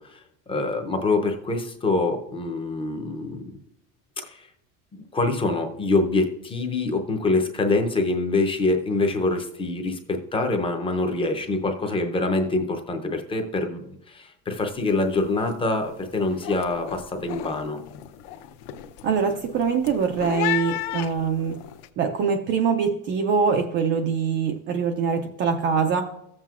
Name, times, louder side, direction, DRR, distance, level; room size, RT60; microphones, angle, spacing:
voice 1, 0.5-3.5 4.2-4.5 4.9-17.8, left 2 dB, 15° left, 5 dB, 0.5 m, -25 dB
sound 1, 14.5-14.8 15.1-15.5 15.9-21.9, left 12 dB, 60° left, 0.7 m, -34 dB
voice 2, 19.0-21.6 22.0-26.0, right 6 dB, 30° right, 5 dB, 0.4 m, -23 dB
15.0 x 7.5 x 2.4 m, 0.80 s
cardioid pair, 175°, 41 cm